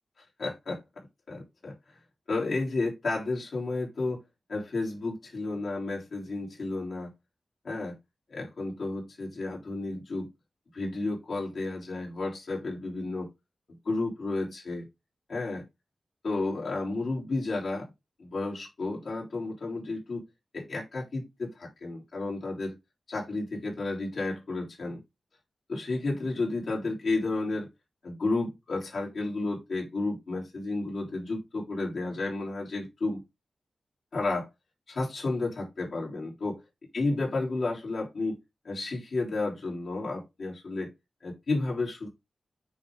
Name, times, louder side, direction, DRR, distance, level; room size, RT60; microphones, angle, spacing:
voice 1, 0.4-0.8 1.3-1.8 2.3-4.2 4.5-7.1 7.6-8.0 8.3-10.3 10.7-13.3 13.9-14.9 15.3-15.6 16.2-17.9 18.2-20.2 20.5-22.8 23.1-25.0 25.7-27.7 28.0-33.2 34.1-34.5 34.9-36.6 36.9-38.4 38.6-40.9 41.2-42.1, left 2 dB, 70° left, 3.6 m, -32 dB
9.1 x 3.8 x 3.8 m
wide cardioid pair, 105°, 0 cm